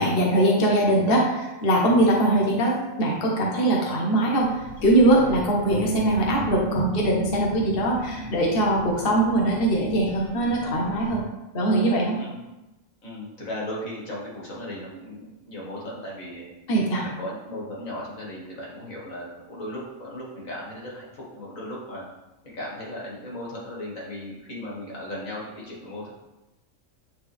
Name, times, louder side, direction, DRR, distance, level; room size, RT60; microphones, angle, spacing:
voice 1, 0.0-4.5 4.8-11.2 11.5-12.2 16.7-17.0, right 1 dB, 45° left, -2 dB, 1.3 m, -21 dB
sound 1, 4.4-11.2, right 1 dB, 15° left, 2.2 m, -36 dB
voice 2, 13.0-16.4 17.2-22.0 22.4-26.1, left 1 dB, 75° left, -5 dB, 2.3 m, -36 dB
8.6 x 4.2 x 3.5 m, 0.99 s
omnidirectional pair, 1.4 m